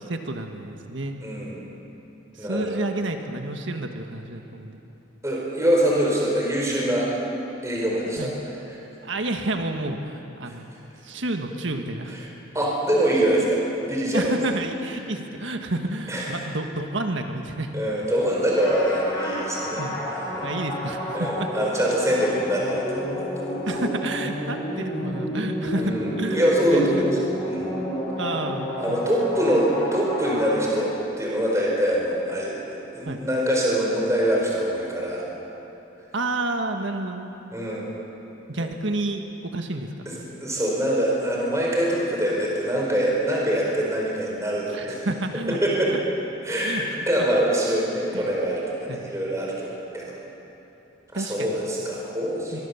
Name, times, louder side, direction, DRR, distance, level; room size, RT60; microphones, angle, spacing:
voice 1, 0.0-1.2 2.3-4.8 8.2-8.3 9.0-10.7 11.0-12.2 14.1-17.7 19.8-19.9 20.4-21.5 23.7-26.8 28.2-29.0 33.0-33.2 36.1-37.3 38.5-40.1 44.7-45.6 45.9-46.0 46.6-46.8 48.1-48.3 48.9-49.0 51.1-51.5 52.5-52.6, right 2 dB, 70° right, 4 dB, 1.6 m, -30 dB
voice 2, 1.2-1.6 2.4-2.8 5.2-7.1 7.6-8.8 10.4-10.5 12.1-12.2 12.5-14.3 16.1-16.4 17.7-19.8 20.1-20.6 21.1-23.6 25.7-27.7 28.8-30.9 31.2-35.2 37.5-38.0 38.6-38.7 40.1-45.1 45.5-45.9 46.4-46.8 47.1-50.2 51.1-52.6, right 1 dB, 15° right, -3 dB, 4.4 m, -24 dB
sound 1, 18.6-31.1, equal, 20° left, 5.7 m, -30 dB
23.5 x 23.0 x 7.1 m, 3.0 s
head